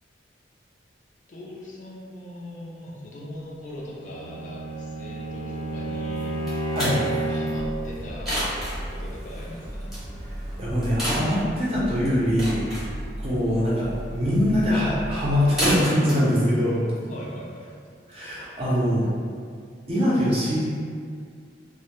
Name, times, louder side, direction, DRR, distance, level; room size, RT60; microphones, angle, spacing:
voice 1, 1.3-6.4 6.9-8.4 8.9-9.9 17.1-17.7, left 1 dB, 45° left, -5 dB, 0.4 m, -40 dB
Bowed string instrument, 3.8-7.7, right 1 dB, 80° left, 0.8 m, -30 dB
sound 1, 6.2-17.6, equal, ahead, 0.7 m, -32 dB
sound 2, 7.5-15.9, right 1 dB, 75° right, 0.7 m, -36 dB
voice 2, 10.6-12.9 13.2-16.8 18.1-19.1 19.9-20.7, equal, 30° right, -7 dB, 0.5 m, -23 dB
2.1 x 2.0 x 2.9 m, 2.2 s
head